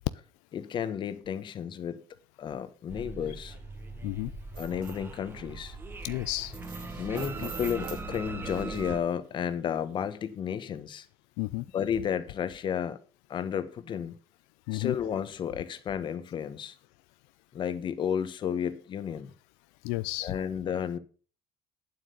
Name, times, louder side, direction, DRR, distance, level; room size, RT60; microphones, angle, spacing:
voice 1, 0.5-2.0 2.4-3.6 4.6-5.8 7.0-11.1 11.7-13.0 13.3-14.1 14.7-16.8 17.5-19.3 20.2-21.0, left 8 dB, 40° left, 1.2 m, -32 dB
sound 1, 2.9-9.0, right 3 dB, 15° right, 1.3 m, -40 dB
sound 2, 4.5-5.0 6.5-8.6 9.3-9.5 10.0-10.1, right 6 dB, 40° right, 2.6 m, -43 dB
voice 2, 6.0-6.6 11.4-11.7 14.7-15.0 19.8-20.4, left 20 dB, 85° left, 0.5 m, -32 dB
9.1 x 7.7 x 6.7 m
cardioid pair, 130°, 13 cm